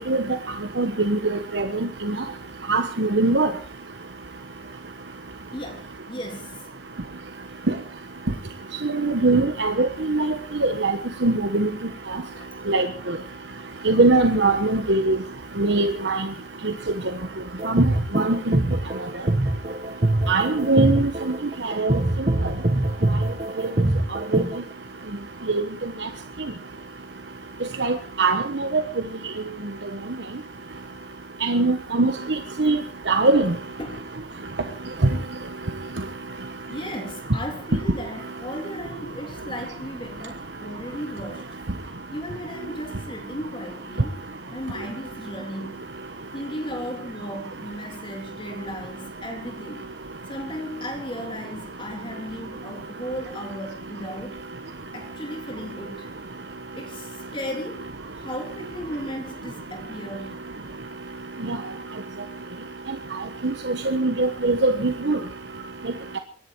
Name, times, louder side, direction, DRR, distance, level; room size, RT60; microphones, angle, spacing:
voice 1, 0.8-1.7 2.0-2.2 2.7-3.5 8.8-10.3 10.6-11.7 12.7-12.9 13.8-15.2 15.6-16.3 17.7-17.8 18.1-18.6 20.3-21.1 21.6-22.0 24.3-24.4 25.5-25.6 27.8-28.8 31.4-32.8 33.1-33.5 61.5-61.6 63.4-65.2, right 3 dB, 75° right, 1.2 m, -21 dB
voice 2, 5.5-6.5 12.4-12.5 14.8-14.9 33.8-34.0 36.7-41.4 42.1-44.2 44.5-45.8 46.3-49.9 50.3-54.4 54.9-56.1 56.7-57.1 57.3-57.9 58.2-60.4, equal, 30° left, 3.2 m, -35 dB
sound 1, 17.6-24.6, right 1 dB, 40° right, 1.3 m, -23 dB
24.0 x 10.5 x 4.6 m
head